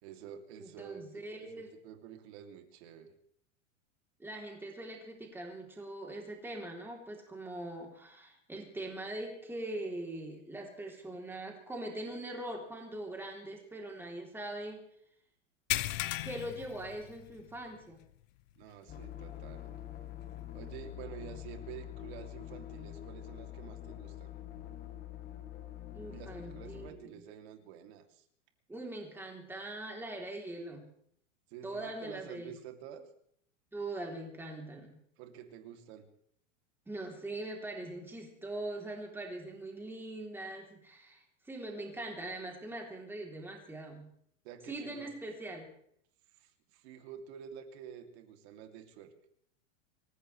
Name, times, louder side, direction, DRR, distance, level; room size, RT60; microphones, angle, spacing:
voice 1, 0.0-1.0 1.4-3.1 18.6-19.7 20.5-24.3 26.1-28.2 31.5-33.0 35.2-36.1 44.4-45.1 46.3-49.1, right 9 dB, 55° right, 5 dB, 2.9 m, -49 dB
voice 2, 0.6-1.7 4.2-14.9 16.2-18.0 25.9-27.0 28.7-30.9 31.6-32.5 33.7-35.0 36.9-44.1 44.7-45.7, right 1 dB, 5° right, 0 dB, 3.2 m, -42 dB
sound 1, 15.7-17.6 17.9-18.1 18.6-18.7 20.4-20.5, left 16 dB, 70° left, 0.8 m, -36 dB
sound 2, 18.9-26.9, left 13 dB, 25° left, 1.4 m, -45 dB
26.5 x 15.0 x 3.3 m, 0.67 s
supercardioid pair, 145°, 39 cm